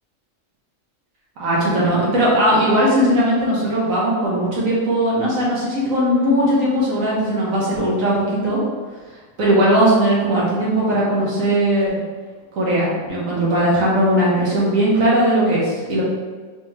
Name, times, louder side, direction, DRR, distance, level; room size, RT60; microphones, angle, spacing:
voice 1, 1.4-8.6 9.4-12.0 12.5-16.0, right 1 dB, 90° right, -6 dB, 1.5 m, -18 dB
4.0 x 3.0 x 3.2 m, 1.4 s
omnidirectional pair, 1.4 m